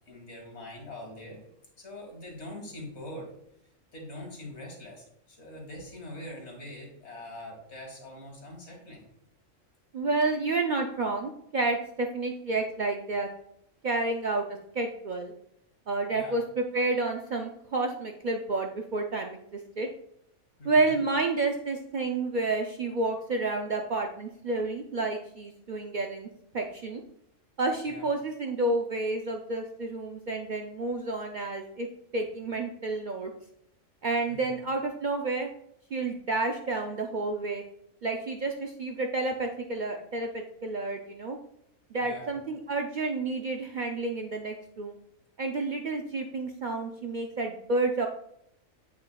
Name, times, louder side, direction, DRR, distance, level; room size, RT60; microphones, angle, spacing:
voice 1, 0.1-1.4 1.8-3.3 3.9-9.1 16.1-16.4 20.6-21.0 27.9-28.0 34.3-34.4 42.0-42.4, left 1 dB, 60° left, 0 dB, 2.1 m, -43 dB
voice 2, 9.9-13.3 13.8-14.5 14.7-15.3 15.9-19.9 20.6-26.3 26.5-27.0 27.6-31.9 32.1-33.3 34.0-35.5 35.9-37.6 38.0-41.4 41.9-45.0 45.4-48.1, right 3 dB, 60° right, 2 dB, 0.5 m, -30 dB
7.4 x 5.9 x 2.2 m, 0.75 s
omnidirectional pair, 1.3 m